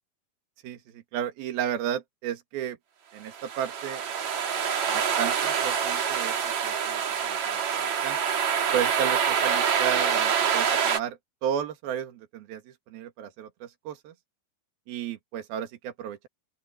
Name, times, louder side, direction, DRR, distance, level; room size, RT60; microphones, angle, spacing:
voice 1, 0.6-2.8 3.1-4.0 4.9-8.2 8.7-14.1 14.9-16.3, right 9 dB, 75° right, 3.7 m, -33 dB
sound 1, 3.3-11.0, right 7 dB, 50° right, 3.1 m, -26 dB
open air
omnidirectional pair, 4.4 m